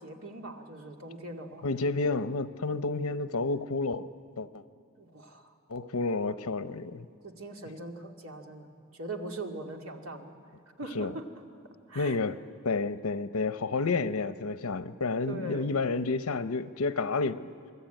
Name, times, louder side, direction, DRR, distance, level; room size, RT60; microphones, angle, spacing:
voice 1, 0.0-1.7 5.0-5.5 7.2-10.3 10.8-11.3 11.9-12.2 15.3-15.7, right 2 dB, 80° right, 2.3 m, -41 dB
voice 2, 1.6-4.1 4.4-4.6 5.7-7.1 10.9-11.1 11.9-12.4 12.6-17.5, left 3 dB, 85° left, 0.8 m, -30 dB
28.0 x 21.0 x 9.1 m
head